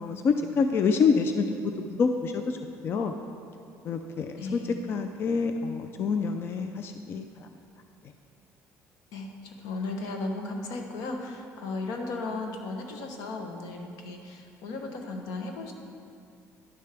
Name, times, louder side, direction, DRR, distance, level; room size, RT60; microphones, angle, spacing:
voice 1, 0.0-1.5 1.8-2.6 2.8-3.1 3.8-4.6 4.9-7.5, left 5 dB, 40° left, 6 dB, 0.4 m, -27 dB
voice 2, 4.4-4.8 9.1-15.7, left 3 dB, 85° left, 3 dB, 1.0 m, -35 dB
11.0 x 6.6 x 3.4 m, 2.5 s
cardioid pair, 130°, 6 cm